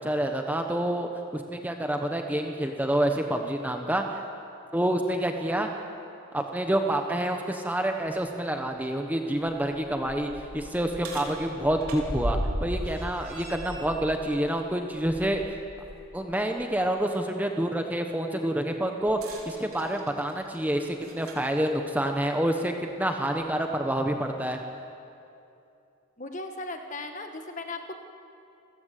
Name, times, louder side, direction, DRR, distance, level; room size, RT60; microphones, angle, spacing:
voice 1, 0.0-4.2 4.7-5.7 6.3-15.4 16.1-24.6, right 1 dB, 5° right, 4 dB, 1.1 m, -28 dB
sound 1, 8.1-8.2 8.7-8.8 9.3-16.1 16.5-16.6 19.1-21.5 22.5-22.6 23.4-23.5, equal, 85° right, 4.1 m, -37 dB
voice 2, 26.2-28.0, left 2 dB, 35° left, 5 dB, 1.6 m, -37 dB
29.0 x 15.5 x 8.3 m, 2.7 s
head